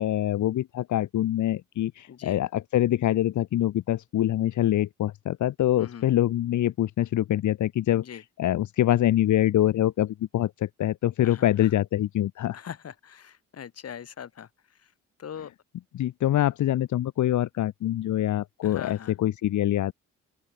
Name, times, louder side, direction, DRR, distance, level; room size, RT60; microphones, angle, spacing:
voice 1, 0.0-12.6 15.9-19.9, left 12 dB, 75° left, 2.3 m, -25 dB
voice 2, 2.1-2.4 5.8-6.1 7.9-8.2 11.2-11.7 12.5-14.9 15.2-15.5 18.6-19.1, left 8 dB, 55° left, 3.8 m, -42 dB
open air
cardioid pair, 90°, 30 cm